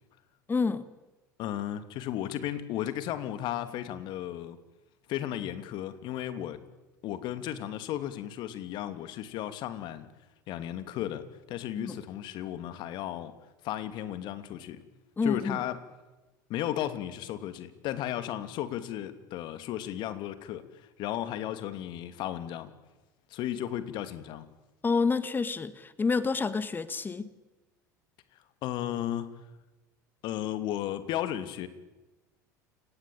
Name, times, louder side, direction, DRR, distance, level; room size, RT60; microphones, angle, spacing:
voice 1, 0.5-0.8 11.8-12.0 15.2-15.6 24.8-27.3, left 4 dB, 20° left, 15 dB, 1.9 m, -28 dB
voice 2, 1.4-4.6 5.1-6.6 7.0-10.1 10.5-13.3 13.6-14.8 15.2-15.8 16.5-22.7 23.3-24.5 28.6-29.3 30.2-31.7, left 12 dB, 50° left, 12 dB, 2.7 m, -34 dB
29.5 x 18.5 x 9.0 m, 1.1 s
figure-of-eight pair, 75°, 10 cm